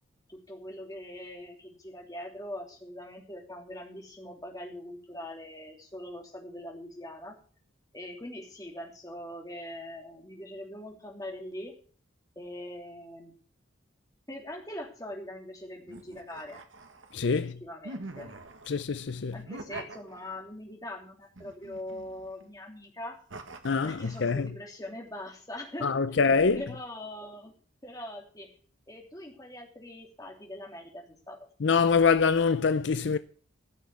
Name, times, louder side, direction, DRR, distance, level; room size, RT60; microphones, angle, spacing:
voice 1, 0.3-7.3 7.9-11.7 12.3-13.3 14.3-16.6 17.6-18.3 19.3-23.2 23.8-27.5 27.8-28.5 28.9-31.4, left 1 dB, 20° left, 2.9 m, -42 dB
sound 1, 15.9-17.3 17.8-18.8 19.4-20.6 21.3-22.4 23.3-24.5, right 2 dB, 80° right, 1.5 m, -45 dB
voice 2, 17.1-17.6 18.7-19.4 23.6-24.5 25.8-26.6 31.6-33.2, left 5 dB, 65° left, 0.5 m, -25 dB
14.5 x 6.4 x 8.1 m
head